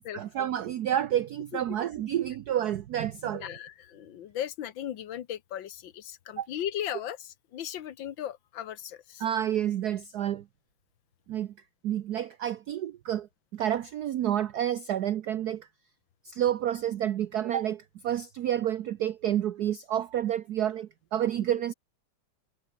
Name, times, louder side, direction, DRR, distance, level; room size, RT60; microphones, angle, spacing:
voice 1, 0.1-3.5 6.4-6.5 9.2-10.4 11.3-11.5 11.8-15.7 16.2-21.7, right 11 dB, 60° right, 1.1 m, -29 dB
voice 2, 3.3-7.2 7.5-9.2, left 10 dB, 70° left, 1.7 m, -37 dB
omnidirectional pair, 2.3 m